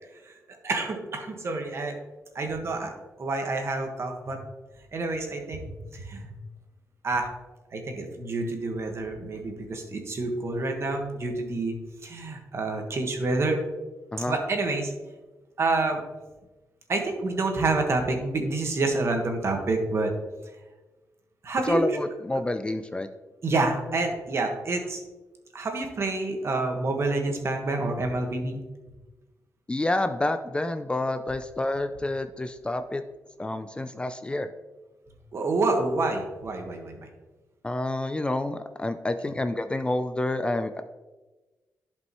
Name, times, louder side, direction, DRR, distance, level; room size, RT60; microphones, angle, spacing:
voice 1, 0.6-1.9 2.3-2.9 3.2-4.4 4.9-6.3 7.0-7.3 7.7-11.7 12.0-13.6 14.3-14.9 15.6-16.0 16.9-20.1 21.4-21.8 23.4-25.0 25.5-28.6 35.3-37.1, right 3 dB, 50° right, 3 dB, 1.5 m, -28 dB
voice 2, 21.7-23.1 29.7-33.0 33.4-34.5 37.6-40.8, left 2 dB, 15° left, 9 dB, 0.4 m, -28 dB
11.0 x 5.3 x 3.0 m, 1.2 s
cardioid pair, 90°, 6 cm